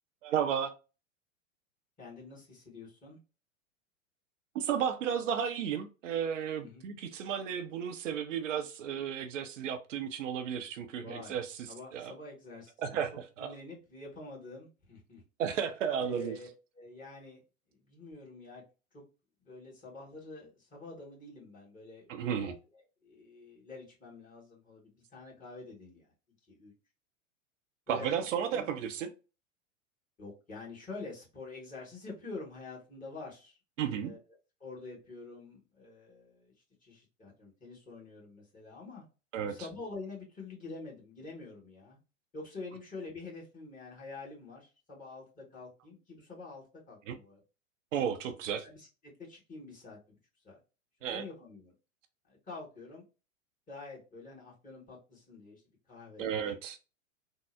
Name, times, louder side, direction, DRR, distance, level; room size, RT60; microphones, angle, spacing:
voice 1, 0.2-0.7 4.5-11.6 11.9-12.1 12.8-13.5 15.4-16.4 22.1-22.6 27.9-29.1 33.8-34.1 39.3-39.5 47.1-47.2 47.9-48.7 51.0-51.3 56.2-56.8, right 8 dB, 70° right, 0.6 m, -33 dB
voice 2, 2.0-3.2 6.6-6.9 11.0-11.4 11.7-13.0 13.4-15.2 16.0-16.5 16.7-17.4 17.7-18.6 18.9-19.0 19.4-22.1 22.4-22.5 23.0-26.1 26.5-26.7 27.9-28.7 30.2-33.6 34.0-34.2 34.6-36.5 36.8-39.0 39.4-42.0 42.3-47.4 48.6-50.2 50.4-50.6 51.0-51.7 52.3-53.0 53.7-55.6 55.9-56.5, left 3 dB, 20° left, 1.7 m, -47 dB
3.6 x 2.0 x 3.2 m
hypercardioid pair, 100°, 40 cm